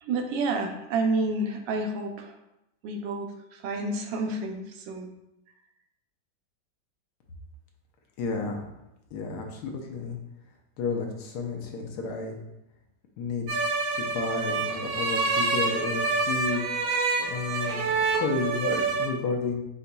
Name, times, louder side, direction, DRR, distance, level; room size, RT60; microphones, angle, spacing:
voice 1, 0.0-2.4 2.8-5.1, right 2 dB, 85° right, 4 dB, 1.3 m, -29 dB
voice 2, 8.2-8.6 9.1-10.2 10.8-12.4 13.2-13.6 13.9-16.6 17.3-19.6, left 4 dB, 70° left, 1 dB, 1.1 m, -31 dB
sound 1, 13.5-19.1, right 4 dB, 65° right, 1.0 m, -27 dB
4.9 x 4.0 x 2.2 m, 0.89 s
omnidirectional pair, 1.9 m